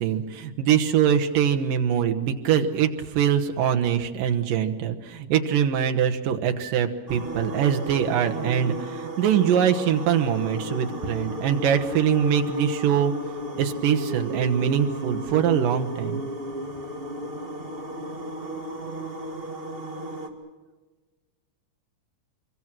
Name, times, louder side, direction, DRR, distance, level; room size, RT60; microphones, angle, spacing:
voice 1, 0.0-13.1 13.6-16.2, right 8 dB, 85° right, 4 dB, 3.0 m, -23 dB
sound 1, 7.1-20.3, right 1 dB, 25° right, 1.5 m, -34 dB
25.0 x 23.0 x 6.2 m, 1.3 s
omnidirectional pair, 3.8 m